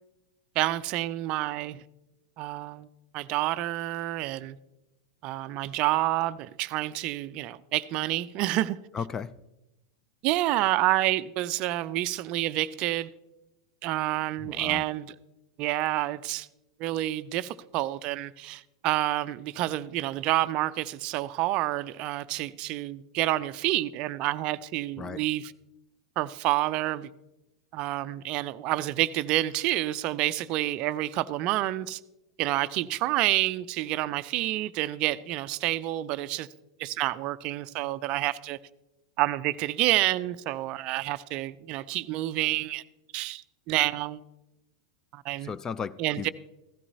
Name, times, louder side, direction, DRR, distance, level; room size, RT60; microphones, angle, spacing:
voice 1, 0.6-1.8 2.4-2.9 3.1-4.6 5.2-8.8 10.2-13.1 13.8-15.1 15.6-16.5 16.8-25.5 26.2-27.1 27.7-32.0 32.4-36.5 36.8-38.6 39.2-42.8 43.1-44.2 45.1-45.5 46.0-46.3, right 16 dB, 40° right, 0.4 m, -28 dB
voice 2, 8.9-9.3 14.4-14.8 25.0-25.2 45.4-46.3, left 6 dB, 20° left, 0.4 m, -35 dB
15.5 x 13.5 x 2.8 m
figure-of-eight pair, 90°, 2 cm